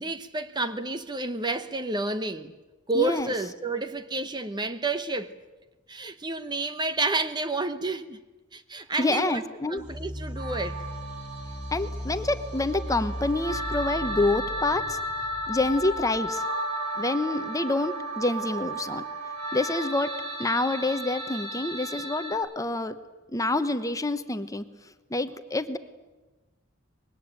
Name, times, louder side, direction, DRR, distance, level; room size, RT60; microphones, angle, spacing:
voice 1, 0.0-2.5 2.9-5.4 5.9-8.2 8.5-10.9, right 2 dB, 20° right, 0.9 m, -30 dB
voice 2, 2.9-3.3 9.0-9.8 11.7-15.0 15.5-16.4 17.0-19.0 19.5-20.1 20.4-23.0 23.3-24.6 25.1-25.8, left 2 dB, 15° left, 1.0 m, -27 dB
sound 1, 9.8-16.3, equal, 5° right, 4.3 m, -37 dB
sound 2, 10.4-22.4, right 1 dB, 65° right, 6.3 m, -34 dB
25.0 x 21.5 x 9.0 m
head